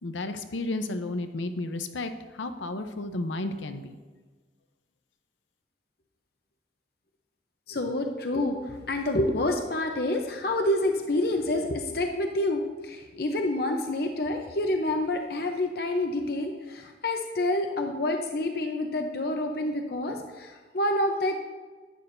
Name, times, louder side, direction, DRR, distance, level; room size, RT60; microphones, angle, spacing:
voice 1, 0.0-4.0, left 2 dB, 85° left, 8 dB, 0.8 m, -32 dB
voice 2, 7.7-21.4, left 1 dB, 55° left, 4 dB, 0.7 m, -28 dB
11.0 x 9.8 x 2.6 m, 1.4 s
head